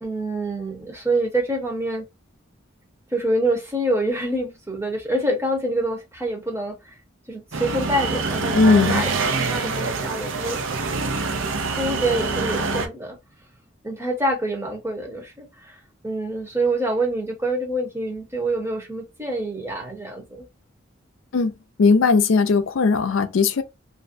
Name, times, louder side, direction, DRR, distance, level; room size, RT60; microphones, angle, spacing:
voice 1, 0.0-2.0 3.1-6.8 7.3-9.1 9.5-11.0 11.7-13.2 13.8-15.7 16.0-20.5, right 1 dB, 15° right, 0.7 m, -26 dB
sound 1, 7.5-12.9, right 4 dB, 80° right, 0.5 m, -25 dB
voice 2, 8.5-9.0 21.3-21.5 21.8-23.6, left 4 dB, 80° left, 0.4 m, -18 dB
2.5 x 2.1 x 2.5 m
head